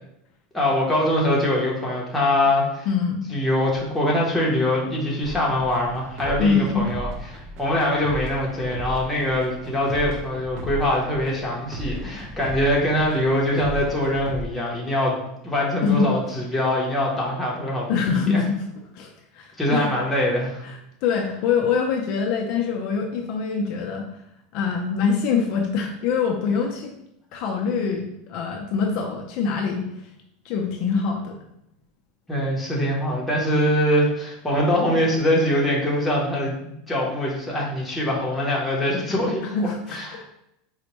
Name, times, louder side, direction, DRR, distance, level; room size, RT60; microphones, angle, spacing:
voice 1, 0.5-2.9 3.3-15.2 15.4-18.4 19.6-20.6 32.3-36.6 36.9-40.2, left 1 dB, 5° left, -4 dB, 0.7 m, -23 dB
voice 2, 2.9-3.2 6.4-6.9 15.8-16.1 17.9-18.6 18.9-19.9 20.6-24.2 24.5-26.9 27.3-30.1 30.4-31.4 39.5-40.0, left 5 dB, 45° left, 1 dB, 0.4 m, -24 dB
sound 1, 5.2-14.5, equal, 45° right, 0.5 m, -36 dB
4.2 x 2.0 x 2.9 m, 0.80 s
supercardioid pair, 165°, 0 cm